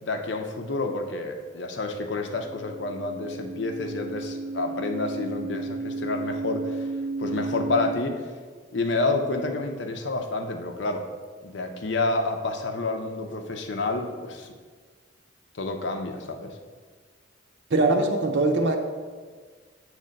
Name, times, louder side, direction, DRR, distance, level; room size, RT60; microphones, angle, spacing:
voice 1, 0.0-6.9 7.2-8.3 8.7-11.1 11.4-14.5 15.5-16.5, left 3 dB, 70° left, 5 dB, 0.7 m, -29 dB
sound 1, 2.2-7.9, right 3 dB, 5° left, 0.3 m, -33 dB
voice 2, 17.7-18.8, right 2 dB, 65° right, 3 dB, 0.6 m, -21 dB
7.7 x 3.2 x 5.2 m, 1.5 s
head